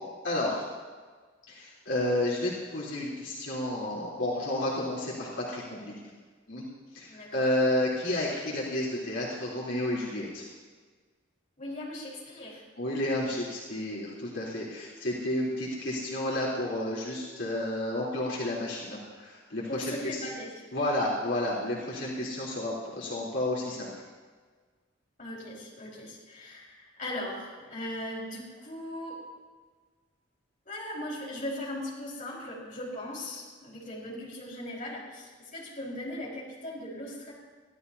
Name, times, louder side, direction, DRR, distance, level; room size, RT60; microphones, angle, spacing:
voice 1, 0.2-0.6 1.5-5.9 6.5-6.7 6.9-10.4 12.8-20.2 20.7-23.9, left 1 dB, 75° left, -6 dB, 3.7 m, -31 dB
voice 2, 7.1-7.4 11.6-12.6 19.7-20.5 25.2-29.2 30.6-37.3, left 1 dB, 45° left, -4 dB, 5.1 m, -38 dB
25.0 x 15.5 x 2.9 m, 1.5 s
head